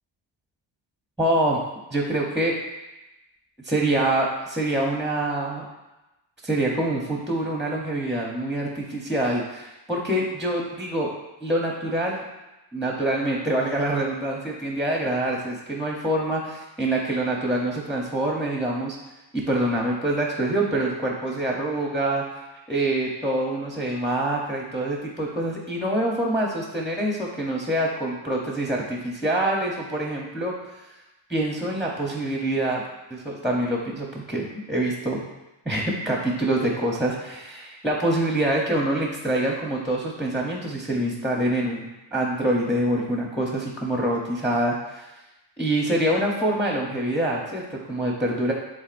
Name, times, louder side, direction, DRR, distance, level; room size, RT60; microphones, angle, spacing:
voice 1, 1.2-1.6 1.9-2.6 3.6-5.6 6.4-11.1 11.4-12.2 12.7-19.0 19.3-22.2 22.7-30.5 31.3-32.8 33.1-35.2 35.7-41.9 42.1-45.0 45.6-48.5, right 1 dB, ahead, -2 dB, 0.7 m, -25 dB
10.5 x 3.8 x 2.5 m, 0.99 s
wide cardioid pair, 145°, 48 cm